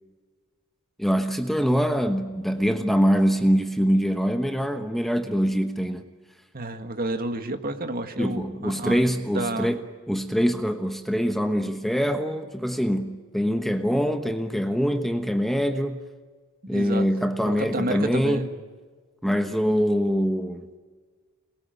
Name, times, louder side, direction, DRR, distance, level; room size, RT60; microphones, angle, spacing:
voice 1, 1.0-6.1 8.2-9.8 10.1-16.0 16.7-18.5 19.2-20.7, equal, ahead, 1.1 m, -24 dB
voice 2, 6.5-9.1 9.3-9.7 16.7-17.1 17.4-18.5, right 2 dB, 40° right, 2.0 m, -30 dB
27.5 x 21.5 x 9.4 m
head